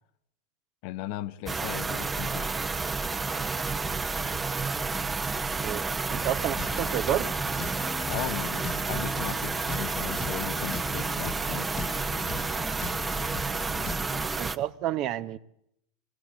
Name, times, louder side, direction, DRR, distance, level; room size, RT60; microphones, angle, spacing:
voice 1, 0.8-2.5 8.1-11.7, left 15 dB, 60° left, 0.9 m, -37 dB
sound 1, 1.5-14.6, right 4 dB, 15° right, 0.9 m, -30 dB
voice 2, 6.1-7.3 14.4-15.4, right 12 dB, 50° right, 1.0 m, -30 dB
sound 2, 6.6-14.3, left 6 dB, 35° left, 1.0 m, -40 dB
23.0 x 15.0 x 8.4 m
hypercardioid pair, 110°, 0 cm